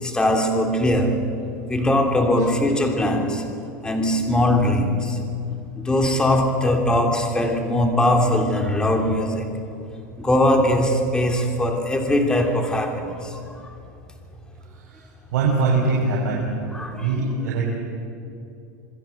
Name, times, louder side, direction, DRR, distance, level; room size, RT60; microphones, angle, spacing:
voice 1, 0.0-1.3 1.7-3.5 3.8-5.2 5.8-9.5 10.2-13.4 16.7-17.5, left 1 dB, 10° left, 3 dB, 3.0 m, -21 dB
voice 2, 15.3-16.5 16.9-17.6, right 4 dB, 70° right, -4 dB, 6.2 m, -22 dB
27.5 x 21.0 x 8.0 m, 2.6 s
supercardioid pair, 145°, 10 cm